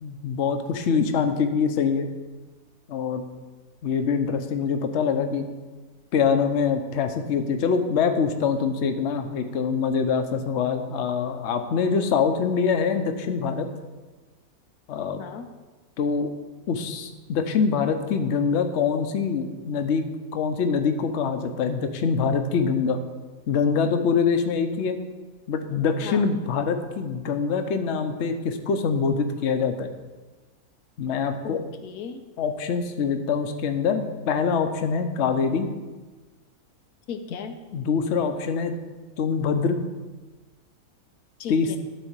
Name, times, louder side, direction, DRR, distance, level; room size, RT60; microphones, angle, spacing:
voice 1, 0.0-2.1 2.9-3.3 3.8-5.5 6.1-13.7 14.9-15.2 16.0-16.3 16.7-23.0 23.5-25.0 25.5-29.9 31.0-31.6 32.4-35.7 37.7-38.7 39.2-39.8 41.5-41.7, left 5 dB, 55° left, 7 dB, 1.0 m, -24 dB
voice 2, 15.2-15.5 26.0-26.3 31.4-32.2 37.1-37.6 41.4-41.8, left 6 dB, 85° left, 6 dB, 1.3 m, -36 dB
12.0 x 4.2 x 7.2 m, 1.3 s
omnidirectional pair, 1.6 m